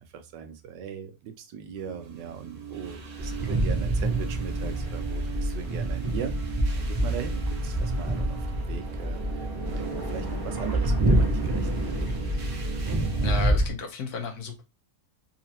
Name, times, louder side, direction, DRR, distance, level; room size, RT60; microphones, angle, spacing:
voice 1, 0.1-6.4 6.8-9.5 9.8-11.7, right 8 dB, 80° right, 8 dB, 1.3 m, -39 dB
sound 1, 1.6-13.5, right 6 dB, 50° right, 1.1 m, -39 dB
sound 2, 3.2-13.7, right 1 dB, 25° right, 0.5 m, -27 dB
voice 2, 13.2-14.6, left 4 dB, 65° left, 3 dB, 1.2 m, -33 dB
4.2 x 2.9 x 2.8 m, 0.26 s
omnidirectional pair, 1.9 m